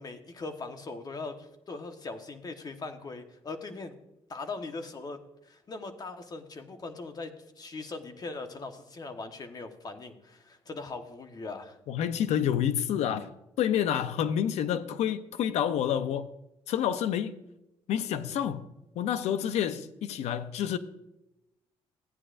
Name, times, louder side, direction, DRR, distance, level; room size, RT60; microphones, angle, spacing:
voice 1, 0.0-4.0 4.3-11.8, left 3 dB, 35° left, 1.2 m, -40 dB
voice 2, 11.9-13.3 13.6-16.3 16.7-17.4 17.9-18.6 18.9-20.8, left 9 dB, 80° left, 0.6 m, -28 dB
15.0 x 9.6 x 2.5 m
cardioid pair, 100°, 11 cm